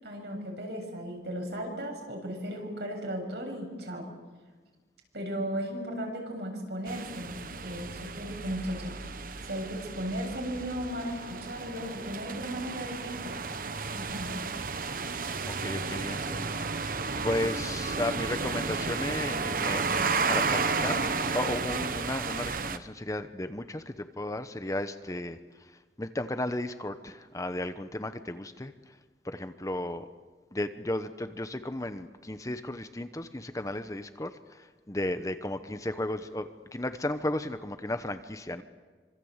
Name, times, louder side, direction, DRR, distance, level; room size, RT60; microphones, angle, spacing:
voice 1, 0.0-4.1 5.1-8.9 9.5-13.4 13.9-14.4, equal, 70° right, 1 dB, 7.6 m, -36 dB
sound 1, 6.9-22.8, right 4 dB, 50° right, 1.1 m, -32 dB
voice 2, 15.4-21.1 21.3-25.7 26.0-28.9 29.2-30.1 30.5-38.6, left 1 dB, 20° left, 9 dB, 1.0 m, -34 dB
27.0 x 25.5 x 8.1 m, 1.4 s
head